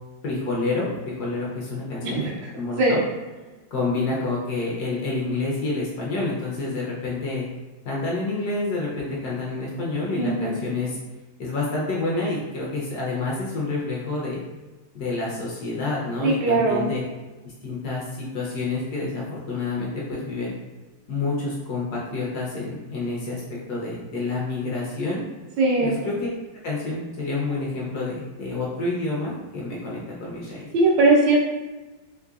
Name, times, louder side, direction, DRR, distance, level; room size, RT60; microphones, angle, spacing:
voice 1, 0.2-3.0 3.7-7.4 7.8-11.0 11.4-14.4 14.9-17.0 17.4-20.5 21.1-25.2 25.8-26.3 26.6-30.6, left 3 dB, 65° left, -5 dB, 1.1 m, -28 dB
voice 2, 10.2-10.5 16.2-16.9 25.6-26.0 30.7-31.4, right 2 dB, 70° right, -2 dB, 1.1 m, -19 dB
3.8 x 3.3 x 2.3 m, 1.2 s
omnidirectional pair, 2.1 m